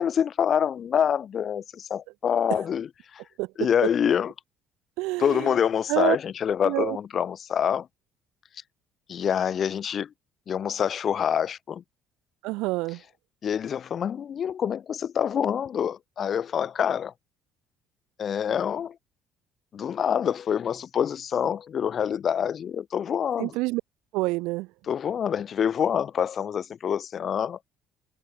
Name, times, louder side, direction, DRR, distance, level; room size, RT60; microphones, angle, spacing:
voice 1, 0.0-3.2 3.6-4.3 5.2-7.9 9.1-10.1 10.5-11.8 13.4-17.1 18.2-19.0 19.7-23.6 24.8-27.6, left 8 dB, 30° left, 2.7 m, -26 dB
voice 2, 5.0-5.5 5.9-6.2 6.6-7.0 12.4-13.0 23.4-23.8 24.1-24.7, right 22 dB, 85° right, 2.2 m, -27 dB
cardioid pair, 170°, 0 cm